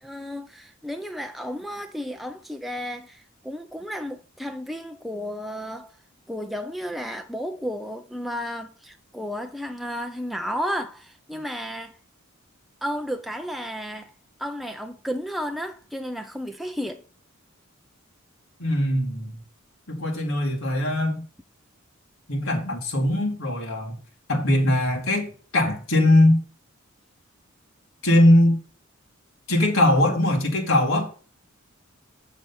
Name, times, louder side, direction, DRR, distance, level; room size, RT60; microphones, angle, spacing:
voice 1, 0.0-5.9 6.3-12.0 12.8-14.1 14.4-17.0, equal, ahead, 0.4 m, -33 dB
voice 2, 18.6-19.4 19.9-21.2 22.3-24.0 24.3-26.4 28.0-28.6 29.5-31.1, left 1 dB, 75° left, 2.3 m, -21 dB
7.0 x 7.0 x 4.1 m
head